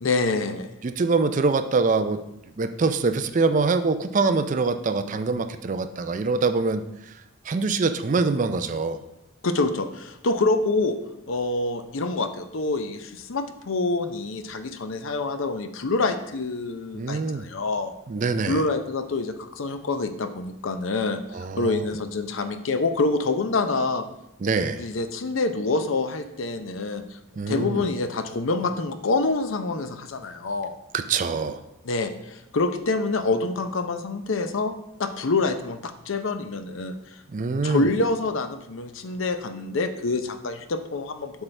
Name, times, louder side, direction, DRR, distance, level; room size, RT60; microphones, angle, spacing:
voice 1, 0.0-0.7 9.4-11.0 11.3-17.9 18.5-21.2 21.6-24.0 24.8-27.0 27.5-30.8 31.8-34.7 35.0-36.9 37.6-41.4, left 3 dB, 75° left, 9 dB, 0.6 m, -26 dB
voice 2, 0.8-2.2 2.6-6.8 7.5-9.0 16.9-17.4 18.1-18.6 21.3-21.8 24.4-24.8 27.4-27.9 30.9-31.6 37.3-37.9, right 4 dB, 40° right, 10 dB, 0.4 m, -24 dB
8.0 x 6.1 x 3.3 m, 0.86 s
head